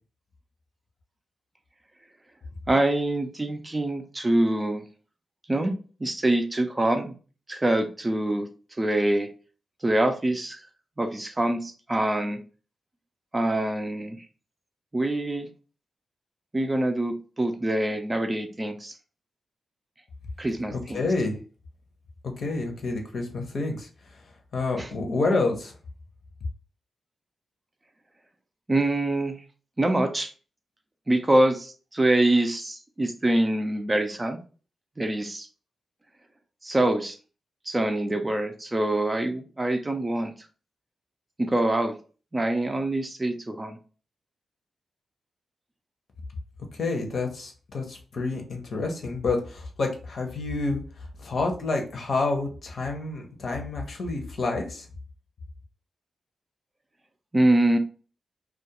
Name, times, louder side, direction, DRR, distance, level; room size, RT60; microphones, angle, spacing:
voice 1, 2.7-4.8 5.5-7.1 7.5-8.5 8.8-9.3 9.8-10.6 11.0-12.4 13.3-14.2 14.9-15.5 16.5-18.9 20.4-21.0 24.8-24.9 28.7-29.3 29.8-30.3 31.1-34.4 35.0-35.5 36.6-37.2 37.7-40.3 41.4-41.9 42.3-43.8 57.3-57.8, right 1 dB, 20° right, 6 dB, 0.4 m, -25 dB
voice 2, 20.7-21.4 22.4-23.9 24.5-25.7 46.7-50.8 51.2-54.9, left 3 dB, 60° left, 2 dB, 0.7 m, -28 dB
2.3 x 2.2 x 2.8 m, 0.37 s
cardioid pair, 90°, 0 cm